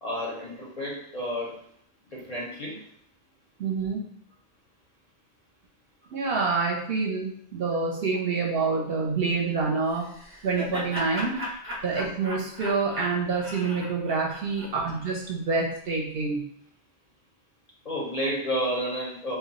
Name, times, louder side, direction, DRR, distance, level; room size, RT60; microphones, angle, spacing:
voice 1, 0.0-1.5 2.1-2.8 17.8-19.4, equal, 50° left, -5 dB, 0.5 m, -31 dB
voice 2, 3.6-4.1 6.1-10.1 10.4-11.4 11.8-16.4, right 4 dB, 65° right, -1 dB, 0.7 m, -27 dB
Laughter, 9.9-15.1, left 1 dB, 15° right, 0.5 m, -37 dB
2.2 x 2.1 x 3.8 m, 0.66 s
omnidirectional pair, 1.2 m